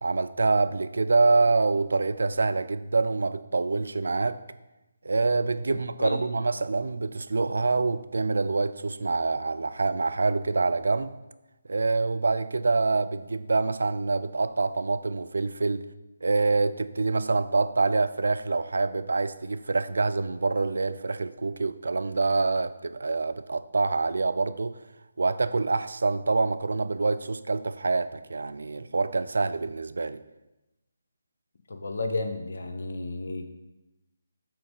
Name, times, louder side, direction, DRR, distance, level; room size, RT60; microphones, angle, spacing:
voice 1, 0.0-4.4 5.0-11.1 11.7-15.8 16.2-24.8 25.2-30.2, right 3 dB, 60° right, 11 dB, 0.3 m, -26 dB
voice 2, 31.7-33.5, left 2 dB, 55° left, 5 dB, 0.5 m, -32 dB
5.9 x 3.7 x 5.3 m, 1.0 s
figure-of-eight pair, 150°, 0 cm